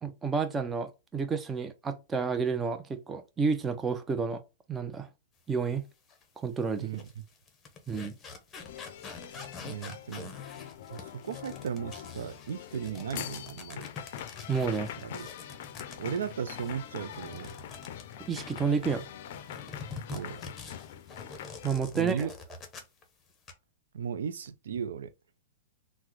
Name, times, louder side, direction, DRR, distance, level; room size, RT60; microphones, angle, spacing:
voice 1, 0.0-4.4 4.7-5.1 5.5-5.8 6.4-6.9 7.9-8.1 14.5-14.9 18.3-19.1 21.6-22.3, right 5 dB, 15° right, 0.4 m, -30 dB
sound 1, 6.1-6.2 6.8-19.0 19.4-23.0 23.3-23.5, left 4 dB, 20° left, 0.7 m, -46 dB
sound 2, 8.6-21.7, left 10 dB, 60° left, 0.4 m, -43 dB
voice 2, 9.6-10.3 10.9-13.9 15.0-15.3 16.0-17.5 20.1-20.4 21.9-22.3 23.9-25.1, right 7 dB, 80° right, 0.3 m, -36 dB
3.5 x 2.1 x 3.0 m
hypercardioid pair, 140°, 0 cm